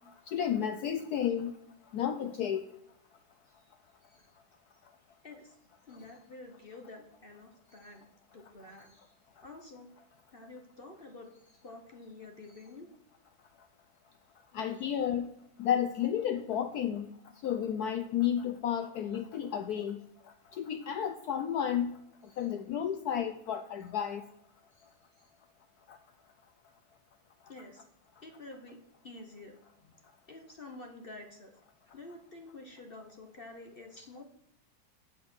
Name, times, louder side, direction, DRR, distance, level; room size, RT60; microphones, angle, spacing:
voice 1, 0.3-1.6 1.9-2.7 14.5-15.3 15.6-20.0 20.5-22.0 22.4-24.2 25.9-26.0, left 9 dB, 75° left, 8 dB, 0.9 m, -32 dB
voice 2, 4.0-4.3 5.2-5.6 5.9-8.0 8.3-9.1 9.4-9.9 10.3-12.9 22.3-22.5 24.7-24.9 25.2-25.3 27.5-27.8 28.2-29.9 30.3-31.5 31.9-34.2, left 2 dB, 40° left, 3 dB, 0.8 m, -49 dB
8.2 x 6.2 x 6.1 m, 0.73 s
omnidirectional pair, 2.2 m